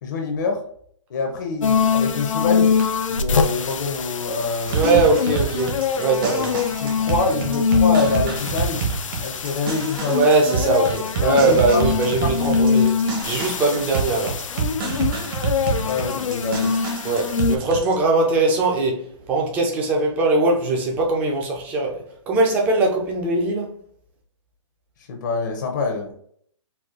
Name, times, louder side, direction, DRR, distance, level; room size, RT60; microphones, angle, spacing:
voice 1, 0.0-0.6 1.1-2.8 3.1-4.8 6.3-6.4 6.8-8.8 9.2-10.2 11.2-11.8 12.2-12.5 15.8-16.7 25.1-26.1, left 4 dB, 40° left, 0.6 m, -26 dB
sound 1, 1.6-17.6, left 6 dB, 85° left, 0.4 m, -23 dB
voice 2, 4.7-6.6 10.1-12.9 13.2-14.4 17.0-23.7, right 2 dB, 10° right, 0.4 m, -21 dB
sound 2, 4.7-17.9, right 5 dB, 45° right, 0.9 m, -28 dB
4.2 x 2.2 x 2.4 m
hypercardioid pair, 155°, 16 cm